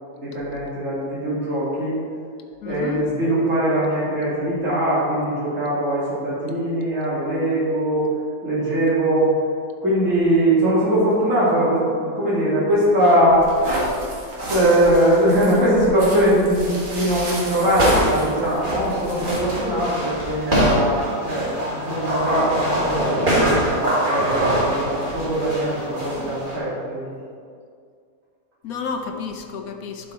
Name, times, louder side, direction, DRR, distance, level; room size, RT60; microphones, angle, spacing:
voice 1, 0.2-2.0 2.6-8.1 8.4-9.3 9.8-14.0 14.5-27.0, right 1 dB, 50° right, -9 dB, 3.0 m, -21 dB
voice 2, 2.6-3.1 28.6-30.1, left 5 dB, 65° left, 5 dB, 1.1 m, -30 dB
sound 1, 13.2-19.4, right 1 dB, 85° right, 2.3 m, -32 dB
sound 2, 16.6-26.6, right 1 dB, 30° right, 1.8 m, -24 dB
10.5 x 5.6 x 4.5 m, 2.2 s
omnidirectional pair, 1.7 m